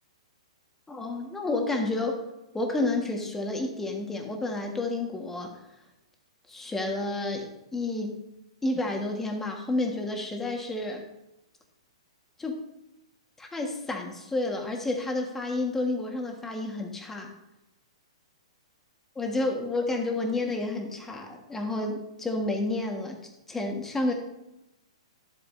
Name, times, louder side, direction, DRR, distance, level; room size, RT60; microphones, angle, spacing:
voice 1, 0.9-2.3 2.5-5.6 6.5-8.1 8.6-11.1 12.4-12.7 13.4-17.3 19.2-23.2 23.5-24.1, left 2 dB, 10° left, 2 dB, 1.6 m, -30 dB
11.5 x 8.1 x 2.7 m, 0.95 s
hypercardioid pair, 120°, 3 cm